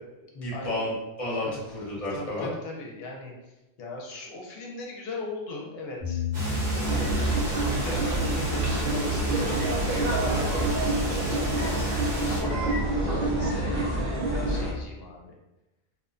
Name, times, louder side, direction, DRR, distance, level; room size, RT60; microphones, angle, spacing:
voice 1, 0.3-2.5 12.5-12.6, left 1 dB, 35° left, -6 dB, 0.9 m, -31 dB
voice 2, 2.1-3.3 3.8-6.2 6.7-11.7 12.0-15.4, left 3 dB, 75° left, -1 dB, 0.8 m, -39 dB
sound 1, 6.0-14.6, equal, 30° right, 0.7 m, -35 dB
Water, 6.3-12.4, equal, 45° right, 1.1 m, -35 dB
sound 2, 6.8-14.7, right 2 dB, 65° right, 0.7 m, -27 dB
2.5 x 2.1 x 2.4 m, 0.96 s
omnidirectional pair, 1.1 m